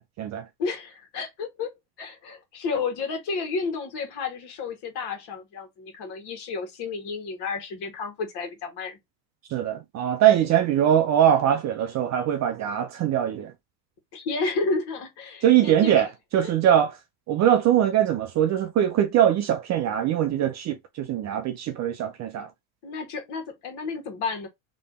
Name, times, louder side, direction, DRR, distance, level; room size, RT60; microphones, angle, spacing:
voice 1, 0.6-1.7 2.0-9.0 14.1-16.1 16.4-16.7 22.8-24.5, left 4 dB, 50° left, 1.8 m, -31 dB
voice 2, 9.5-13.5 15.4-16.9 17.3-22.5, right 10 dB, 35° right, 0.5 m, -22 dB
3.3 x 3.0 x 4.0 m
supercardioid pair, 105°, 49 cm